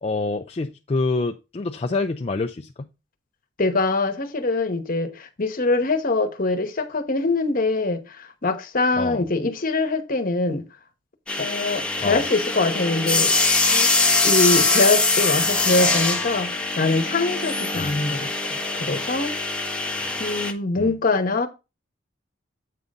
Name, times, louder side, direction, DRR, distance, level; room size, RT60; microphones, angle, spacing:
voice 1, 0.0-2.9 9.0-9.3 12.0-12.2 17.7-18.0 20.8-20.9, left 3 dB, 35° left, 0.4 m, -27 dB
voice 2, 3.6-10.6 11.4-13.9 14.2-19.3 19.9-21.5, left 3 dB, 50° left, 1.0 m, -24 dB
sound 1, 11.3-20.5, left 3 dB, 5° left, 1.0 m, -23 dB
8.3 x 3.8 x 5.3 m
head